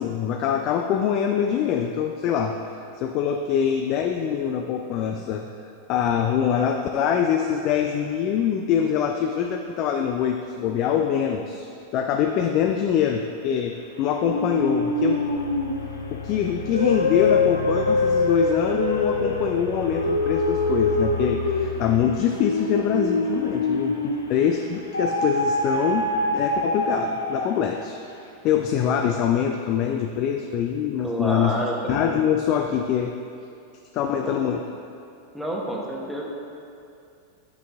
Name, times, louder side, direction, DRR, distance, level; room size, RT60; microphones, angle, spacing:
voice 1, 0.0-2.6 3.0-5.5 5.9-11.7 11.9-15.2 16.1-28.0 28.4-31.5 31.9-33.1 33.9-34.6, left 8 dB, 40° left, 4 dB, 0.3 m, -24 dB
sound 1, 14.2-24.4 24.9-27.7, left 2 dB, 75° left, 0.6 m, -25 dB
voice 2, 31.0-31.9 34.2-34.4 35.3-36.2, right 1 dB, ahead, -3 dB, 1.1 m, -29 dB
8.0 x 5.5 x 3.6 m, 2.5 s
figure-of-eight pair, 90°, 0 cm